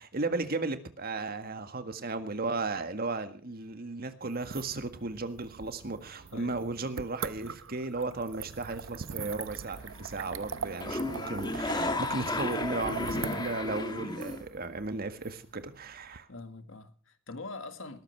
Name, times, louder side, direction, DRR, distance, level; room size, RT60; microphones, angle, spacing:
voice 1, 0.0-16.3, right 3 dB, 50° right, 1.8 m, -35 dB
sound 1, 4.3-16.2, right 6 dB, 70° right, 0.7 m, -42 dB
sound 2, 9.8-10.2 10.5-14.4, left 2 dB, 20° left, 1.6 m, -33 dB
voice 2, 16.3-18.0, left 3 dB, 70° left, 1.8 m, -43 dB
19.0 x 13.5 x 4.6 m
head